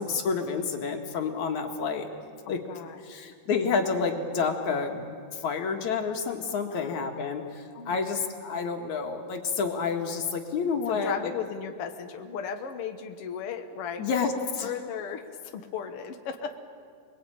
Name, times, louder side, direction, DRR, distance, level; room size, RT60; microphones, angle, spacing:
voice 1, 0.0-2.1 2.5-2.6 3.0-11.3 14.0-14.7, left 5 dB, 55° left, 3 dB, 2.8 m, -29 dB
voice 2, 2.5-3.3 6.7-6.9 7.7-8.2 10.9-14.1 14.6-15.3 15.5-16.6, left 7 dB, 70° left, 5 dB, 1.3 m, -36 dB
28.5 x 21.5 x 8.7 m, 2.2 s
omnidirectional pair, 4.6 m